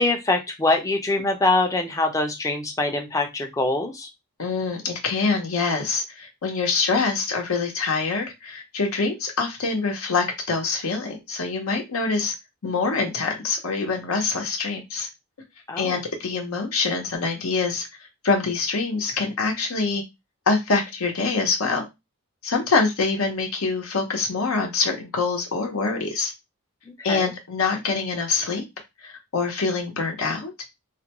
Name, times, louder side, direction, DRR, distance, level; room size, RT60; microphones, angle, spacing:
voice 1, 0.0-4.1 15.7-16.0 26.9-27.3, left 2 dB, 15° left, 4 dB, 0.5 m, -24 dB
voice 2, 4.4-12.3 12.6-15.1 15.8-17.9 18.2-20.0 20.5-21.8 22.4-26.3 27.0-28.6 29.0-30.5, left 4 dB, 75° left, 2 dB, 0.8 m, -25 dB
2.5 x 2.2 x 2.9 m, 0.21 s
head